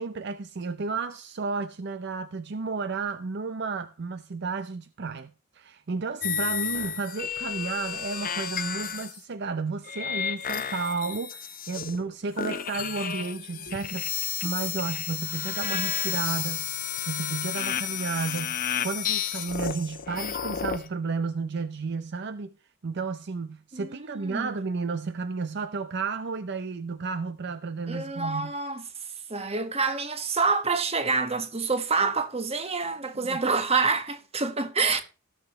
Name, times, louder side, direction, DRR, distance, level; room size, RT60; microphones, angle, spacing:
voice 1, 0.0-16.7 17.0-18.6 18.8-22.6 22.8-28.5 33.1-33.4, right 4 dB, 60° right, 0.6 m, -32 dB
sound 1, 6.2-9.2 9.9-12.1 12.4-20.9, left 8 dB, 45° left, 0.9 m, -32 dB
voice 2, 23.7-24.5 27.9-28.8 29.3-35.0, right 4 dB, 30° right, 1.3 m, -27 dB
17.0 x 6.9 x 3.1 m
head